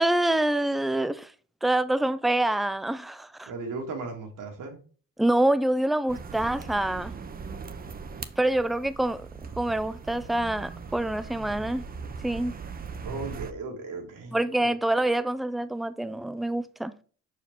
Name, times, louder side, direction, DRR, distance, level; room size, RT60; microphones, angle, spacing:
voice 1, 0.0-1.3 1.6-3.5 5.2-7.1 8.4-9.3 9.6-11.9 12.2-12.5 14.3-17.0, right 1 dB, ahead, 0.3 m, -26 dB
voice 2, 3.5-4.8 13.0-14.4 14.6-14.7, right 3 dB, 75° right, 2.0 m, -36 dB
sound 1, 6.1-13.5, right 5 dB, 30° right, 0.6 m, -40 dB
5.7 x 4.8 x 3.6 m
cardioid pair, 110°, 32 cm